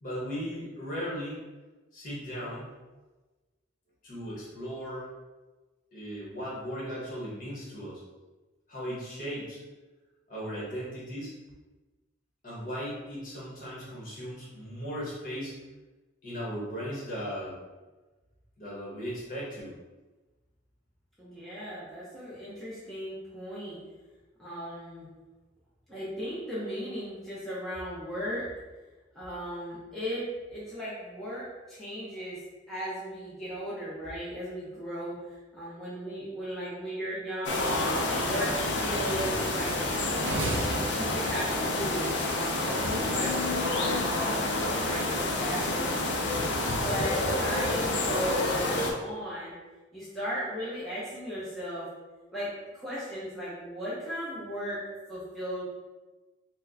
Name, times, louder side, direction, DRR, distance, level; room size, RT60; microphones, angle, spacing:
voice 1, 0.0-1.4 1.9-2.7 4.0-5.0 5.9-8.0 8.7-9.6 10.3-11.3 12.4-15.5 16.2-17.5 18.6-19.7, equal, 45° left, -7 dB, 1.2 m, -37 dB
voice 2, 21.2-23.8 24.4-25.1 25.9-28.4 29.1-32.4 32.7-37.7 38.1-38.5 38.8-40.5 40.7-46.0 46.7-49.5 49.9-51.9 52.3-54.8 55.1-55.6, equal, ahead, -10 dB, 0.6 m, -36 dB
sound 1, 37.4-48.9, left 2 dB, 65° left, 0.5 m, -28 dB
sound 2, 40.2-42.5, right 2 dB, 70° right, 0.4 m, -35 dB
4.4 x 2.1 x 2.7 m, 1.2 s
head